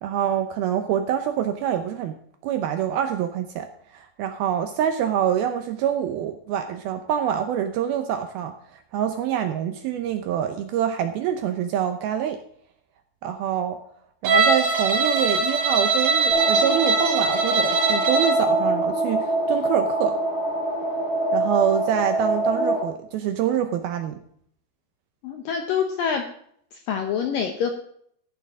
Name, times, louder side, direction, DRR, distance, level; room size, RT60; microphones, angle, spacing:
voice 1, 0.0-2.2 2.4-12.4 13.2-13.8 14.2-20.2 21.3-24.2, right 9 dB, 85° right, 7 dB, 2.2 m, -26 dB
Bowed string instrument, 14.2-18.5, right 3 dB, 60° right, 3.3 m, -22 dB
sound 1, 16.3-22.8, right 1 dB, 30° left, 1.1 m, -24 dB
voice 2, 25.2-26.2 26.7-27.7, left 7 dB, 80° left, 4 dB, 2.0 m, -26 dB
14.5 x 10.5 x 3.7 m, 0.65 s
omnidirectional pair, 5.3 m